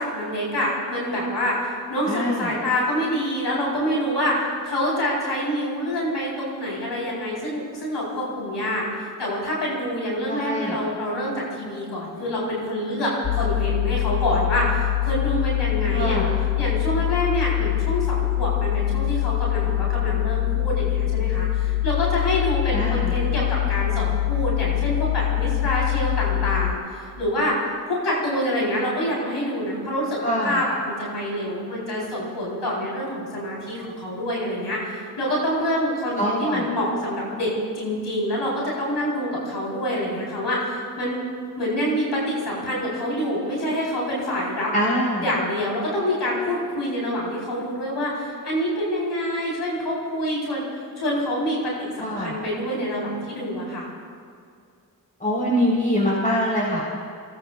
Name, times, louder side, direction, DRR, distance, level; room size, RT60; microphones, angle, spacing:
voice 1, 0.0-8.9 9.2-16.3 16.6-27.6 27.9-37.5 37.8-41.2 41.6-44.7 45.2-50.7 51.0-53.9, equal, 85° left, -5 dB, 4.1 m, -26 dB
voice 2, 2.1-2.5 10.3-10.8 15.9-16.3 22.7-23.1 30.2-30.6 36.2-36.7 44.7-45.2 52.0-52.3 55.2-56.8, equal, 20° left, -5 dB, 4.3 m, -24 dB
sound 1, 13.2-26.7, left 15 dB, 60° left, 0.9 m, -24 dB
26.5 x 18.0 x 2.4 m, 2.3 s
cardioid pair, 45°, 40 cm